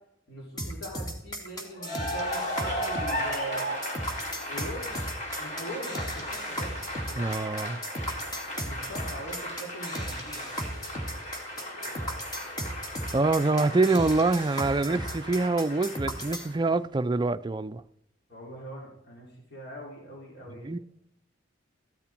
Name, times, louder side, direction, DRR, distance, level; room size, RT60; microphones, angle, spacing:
voice 1, 0.3-3.6 4.5-5.1 5.4-6.9 8.6-10.4 18.3-20.7, right 1 dB, 60° left, 4.1 m, -41 dB
sound 1, 0.6-16.5, equal, 20° left, 2.5 m, -36 dB
Cheering / Applause, 1.7-16.7, equal, 40° left, 3.4 m, -36 dB
voice 2, 7.2-7.8 13.1-17.8 20.6-20.8, right 3 dB, 25° right, 0.4 m, -25 dB
15.0 x 12.5 x 4.5 m
head